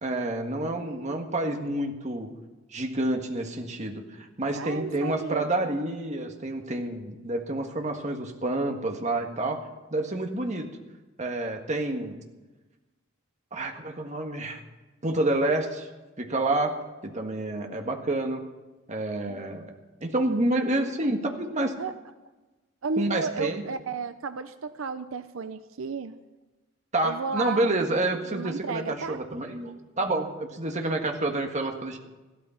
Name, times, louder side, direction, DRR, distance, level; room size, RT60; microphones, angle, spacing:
voice 1, 0.0-2.3 2.7-9.6 9.9-10.7 11.2-12.2 13.5-14.6 15.0-15.9 16.2-16.7 17.0-18.4 18.9-19.7 20.0-21.7 23.0-23.6 26.9-32.0, right 2 dB, 35° right, 3 dB, 1.7 m, -28 dB
voice 2, 0.8-1.2 4.5-5.7 9.3-9.5 19.3-19.5 21.8-21.9 22.8-26.2 27.0-27.7 28.2-29.2, right 4 dB, 80° right, 11 dB, 0.6 m, -33 dB
15.0 x 13.0 x 5.8 m, 1.2 s
head